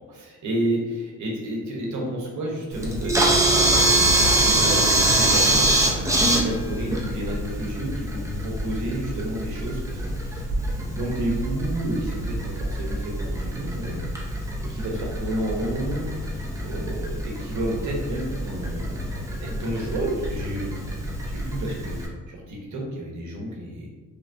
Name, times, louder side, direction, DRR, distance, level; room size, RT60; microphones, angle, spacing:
voice 1, 0.0-10.5 10.9-14.0 14.3-14.4 14.7-16.1 16.6-19.0 19.4-20.8 21.3-23.9, right 1 dB, 75° right, -1 dB, 0.8 m, -30 dB
Camera, 2.7-22.1, right 1 dB, 10° right, 0.5 m, -25 dB
sound 1, 3.0-5.6, right 7 dB, 30° right, 1.1 m, -31 dB
3.2 x 2.1 x 2.5 m, 1.4 s
cardioid pair, 90°, 30 cm